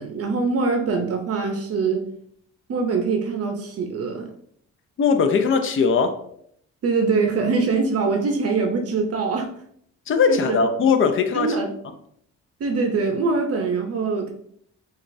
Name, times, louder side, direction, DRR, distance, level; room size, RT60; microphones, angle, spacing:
voice 1, 0.0-2.1 2.7-4.3 6.8-9.5 10.3-10.6 11.3-11.7 12.6-14.3, right 4 dB, 50° right, 4 dB, 0.6 m, -23 dB
voice 2, 5.0-6.2 10.1-11.6, left 5 dB, 45° left, 7 dB, 0.6 m, -19 dB
6.1 x 2.4 x 2.6 m, 0.68 s
cardioid pair, 90°, 30 cm